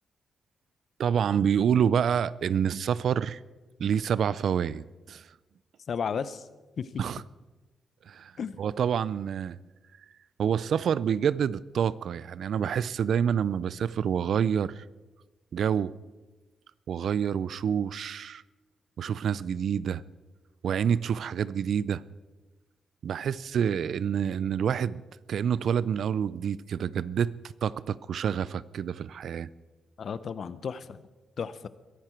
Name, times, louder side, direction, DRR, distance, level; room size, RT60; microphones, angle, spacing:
voice 1, 1.0-3.4 3.8-4.8 5.1-5.3 7.0-7.2 8.1-8.3 8.6-9.6 10.4-14.8 15.5-15.9 16.9-18.4 19.0-20.0 20.6-22.0 23.0-25.0 25.3-27.3 27.6-29.5, right 8 dB, 65° right, 19 dB, 0.4 m, -27 dB
voice 2, 5.9-6.4 6.8-6.9 8.4-8.6 30.0-31.0 31.4-31.7, left 6 dB, 50° left, 15 dB, 0.7 m, -33 dB
22.0 x 11.0 x 4.5 m, 1.2 s
cardioid pair, 115°, 0 cm